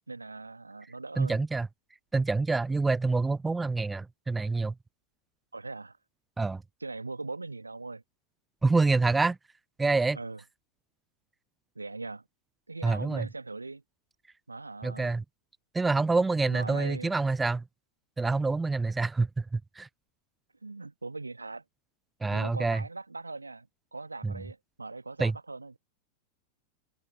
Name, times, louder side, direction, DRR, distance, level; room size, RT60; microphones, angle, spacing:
voice 1, 0.1-1.4 5.5-6.0 6.8-8.0 10.1-10.4 11.7-12.2 12.7-13.8 14.5-15.2 16.5-17.1 20.6-21.6 22.3-25.8, right 3 dB, 80° right, 1.2 m, -40 dB
voice 2, 1.2-1.7 2.1-4.7 6.4-6.6 8.6-9.4 9.8-10.2 12.8-13.3 14.8-15.2 15.7-17.6 18.2-19.9 22.2-22.8 24.2-24.3 25.2-25.3, right 3 dB, 10° right, 0.3 m, -27 dB
figure-of-eight pair, 90°, 0 cm